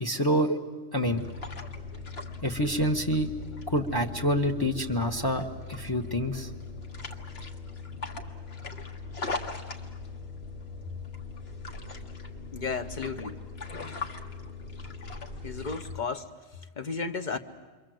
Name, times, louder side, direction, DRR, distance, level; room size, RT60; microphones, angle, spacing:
voice 1, 0.0-0.6 0.9-1.2 2.4-3.3 3.7-6.5, equal, 20° left, 6 dB, 1.1 m, -27 dB
sound 1, 1.0-16.0, left 3 dB, 60° left, 1.7 m, -39 dB
voice 2, 12.5-13.4 13.7-14.0 15.4-16.3 16.8-17.4, left 4 dB, 45° left, 7 dB, 1.1 m, -33 dB
28.5 x 23.5 x 7.8 m, 1.3 s
omnidirectional pair, 1.2 m